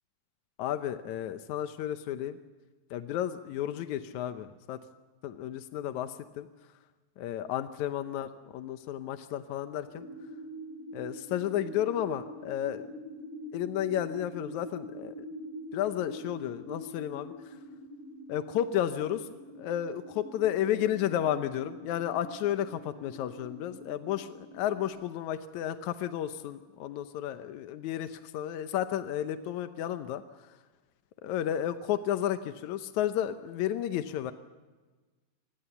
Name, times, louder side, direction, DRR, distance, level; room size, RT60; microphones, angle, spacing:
voice 1, 0.6-2.4 2.9-4.8 5.2-6.5 7.2-10.1 10.9-12.8 13.5-15.1 15.7-17.6 18.3-30.6 31.2-34.3, left 11 dB, 85° left, 9 dB, 2.2 m, -32 dB
sound 1, 9.9-24.9, equal, 20° left, 6.9 m, -45 dB
26.0 x 20.5 x 7.0 m, 1.3 s
omnidirectional pair, 3.3 m